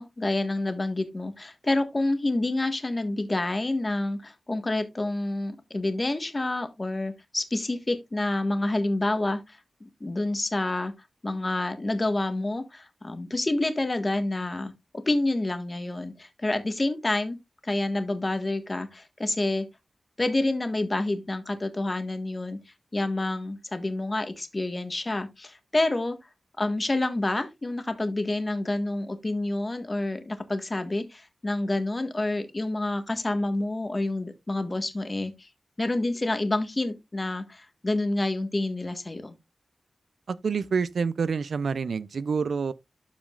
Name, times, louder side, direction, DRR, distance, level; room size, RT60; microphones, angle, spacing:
voice 1, 0.0-10.9 11.2-14.7 15.0-17.4 17.6-19.6 20.2-22.6 22.9-26.2 26.6-35.5 35.8-39.3, left 2 dB, 30° left, 1.5 m, -28 dB
voice 2, 40.3-42.7, right 5 dB, 80° right, 0.5 m, -27 dB
12.5 x 5.1 x 2.4 m
wide cardioid pair, 95°, 0 cm